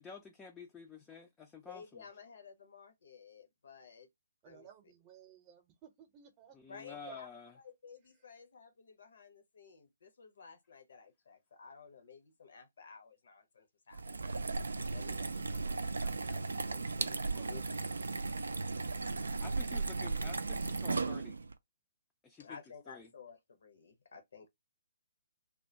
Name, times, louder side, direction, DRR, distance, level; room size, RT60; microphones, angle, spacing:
voice 1, 0.0-2.0 6.5-7.5 19.4-21.4 22.2-22.6 22.9-23.1, left 4 dB, 10° left, 0.4 m, -50 dB
voice 2, 1.6-4.1 4.4-4.7 6.7-7.3 7.5-14.4 14.9-17.2 17.5-17.6 22.4-24.5, left 6 dB, 60° left, 0.7 m, -54 dB
voice 3, 4.4-7.2 17.2-17.8 19.5-19.6, right 9 dB, 25° right, 0.7 m, -59 dB
sound 1, 13.9-21.5, right 3 dB, 70° right, 0.3 m, -36 dB
2.2 x 2.1 x 2.7 m
figure-of-eight pair, 135°, 0 cm